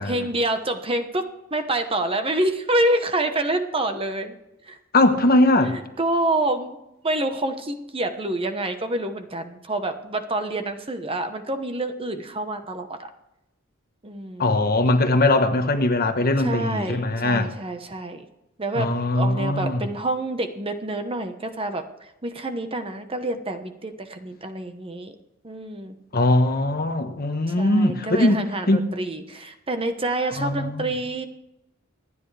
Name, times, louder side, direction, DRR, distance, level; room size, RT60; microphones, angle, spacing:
voice 1, 0.0-4.4 4.7-4.8 5.6-6.8 7.0-13.1 14.0-14.5 16.4-18.2 18.6-21.8 22.2-25.1 25.4-25.9 27.5-31.3, right 1 dB, 25° right, 1.1 m, -27 dB
voice 2, 4.9-5.8 14.4-17.5 18.7-19.8 26.1-28.9 30.4-30.9, left 2 dB, 45° left, 1.2 m, -21 dB
25.5 x 10.0 x 3.4 m
head